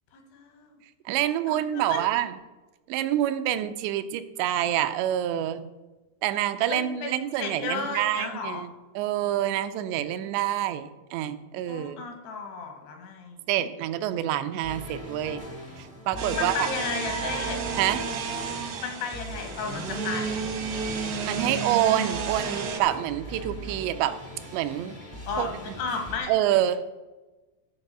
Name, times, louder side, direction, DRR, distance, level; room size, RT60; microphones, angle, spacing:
voice 1, 0.1-0.8 1.5-2.0 6.7-8.6 11.7-13.4 16.3-17.6 18.8-20.4 25.3-26.3, left 5 dB, 75° left, 4 dB, 3.6 m, -34 dB
voice 2, 1.1-2.4 2.9-5.7 6.2-12.0 13.5-15.4 15.8-16.5 17.8-18.0 21.2-24.2 24.5-25.0 25.4-25.8 26.3-26.8, right 12 dB, 85° right, 10 dB, 2.9 m, -27 dB
sound 1, 14.6-26.2, equal, 35° left, 0.4 m, -40 dB
sound 2, 16.2-22.8, right 5 dB, 70° right, 1.4 m, -32 dB
13.0 x 4.8 x 6.7 m, 1.2 s
omnidirectional pair, 4.9 m